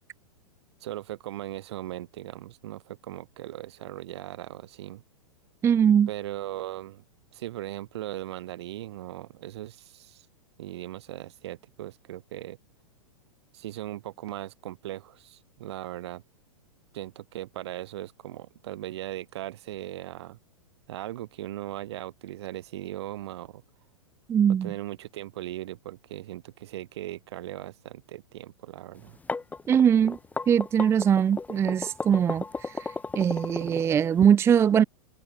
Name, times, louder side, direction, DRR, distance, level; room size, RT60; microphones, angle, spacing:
voice 1, 0.8-5.0 6.1-7.0 7.3-10.3 10.6-12.6 13.5-16.2 16.9-20.4 20.9-23.6 24.6-29.2, right 14 dB, 50° right, 4.9 m, -38 dB
voice 2, 5.6-6.1 24.3-24.7 29.7-30.2 30.5-34.8, right 8 dB, 15° right, 0.7 m, -22 dB
sound 1, 29.0-34.2, left 4 dB, 10° left, 2.6 m, -34 dB
figure-of-eight pair, 100°, 17 cm